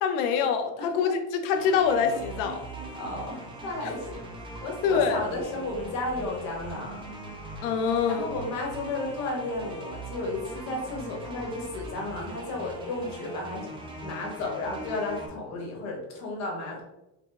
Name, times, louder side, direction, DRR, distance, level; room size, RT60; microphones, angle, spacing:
voice 1, 0.0-2.7 4.8-5.2 7.6-8.3, left 6 dB, 75° left, 6 dB, 0.7 m, -25 dB
voice 2, 0.8-1.1 2.9-4.2 4.6-7.1 8.1-13.7 14.0-16.8, left 2 dB, 45° left, 0 dB, 1.2 m, -33 dB
sound 1, 1.6-15.3, right 1 dB, 15° right, 0.4 m, -41 dB
5.0 x 2.2 x 3.5 m, 0.95 s
cardioid pair, 165°, 37 cm